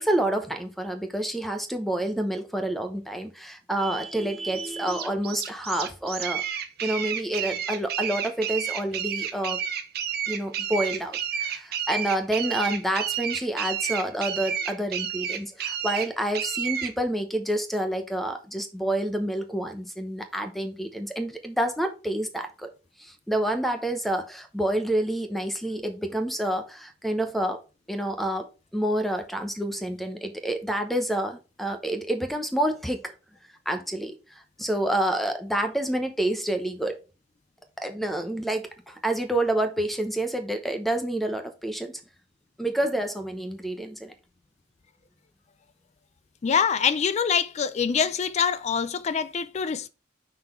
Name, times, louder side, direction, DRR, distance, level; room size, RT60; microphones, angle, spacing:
voice 1, 0.0-6.4 6.8-9.6 10.3-22.7 23.0-27.6 27.9-28.5 28.7-33.1 33.7-36.9 37.8-41.9 42.6-44.1, right 1 dB, ahead, 0.8 m, -28 dB
sound 1, 4.5-16.9, right 9 dB, 55° right, 0.8 m, -31 dB
voice 2, 46.4-49.9, left 6 dB, 35° left, 0.4 m, -25 dB
5.9 x 3.9 x 4.4 m
head